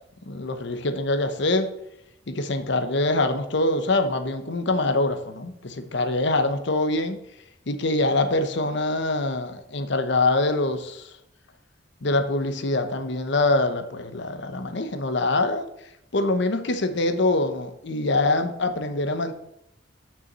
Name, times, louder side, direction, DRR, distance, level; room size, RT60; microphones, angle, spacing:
voice 1, 0.3-1.7 2.3-7.2 7.7-11.1 12.0-15.7 16.1-19.3, left 2 dB, 65° left, 8 dB, 0.9 m, -24 dB
6.7 x 6.1 x 7.3 m, 0.78 s
head